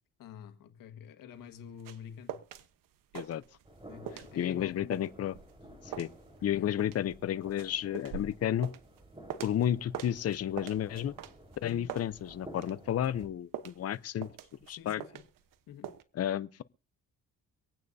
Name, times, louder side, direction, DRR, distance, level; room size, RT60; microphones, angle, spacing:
voice 1, 0.2-2.4 3.9-5.0 5.6-6.1 6.4-6.6 11.6-11.9 14.7-15.2 15.7-15.9, left 9 dB, 80° left, 1.7 m, -48 dB
sound 1, 1.4-2.7 2.9-3.8 4.1-9.7 9.9-12.8 13.0-15.6 15.8-16.0, right 10 dB, 80° right, 1.1 m, -43 dB
sound 2, 3.7-13.3, right 1 dB, 15° right, 4.3 m, -53 dB
voice 2, 4.4-5.4 5.8-6.1 6.4-8.7 9.4-11.1 11.6-14.3 14.7-15.0 16.1-16.6, left 10 dB, 50° left, 0.7 m, -32 dB
25.0 x 9.2 x 2.7 m
cardioid pair, 75°, 33 cm